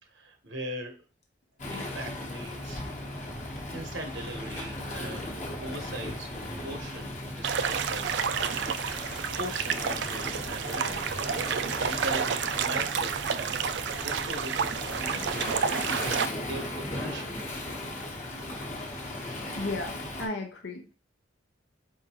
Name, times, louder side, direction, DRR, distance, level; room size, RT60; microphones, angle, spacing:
voice 1, 0.1-0.9 1.7-2.8 3.7-7.1 7.4-8.9 9.4-11.1 11.6-17.7 18.5-18.6, right 1 dB, 85° right, 4 dB, 1.0 m, -40 dB
Waves surf, 1.6-20.3, left 1 dB, 40° left, 1.0 m, -37 dB
Engine, 3.0-15.7, equal, 5° right, 0.5 m, -49 dB
sound 1, 7.4-16.3, right 7 dB, 70° right, 0.4 m, -30 dB
voice 2, 19.6-20.9, left 2 dB, 75° left, 3 dB, 0.7 m, -35 dB
4.7 x 3.6 x 2.9 m, 0.36 s
head